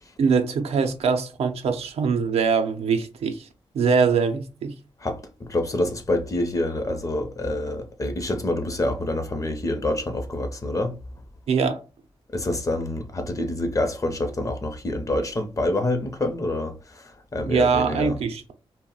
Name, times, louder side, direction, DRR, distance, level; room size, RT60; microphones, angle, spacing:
voice 1, 0.2-3.5 3.7-4.7 11.5-11.8 17.5-18.5, right 5 dB, 80° right, 0.5 m, -22 dB
voice 2, 5.0-11.0 12.3-18.2, left 1 dB, 30° left, 0.6 m, -27 dB
2.3 x 2.1 x 3.7 m
cardioid pair, 80°, 10 cm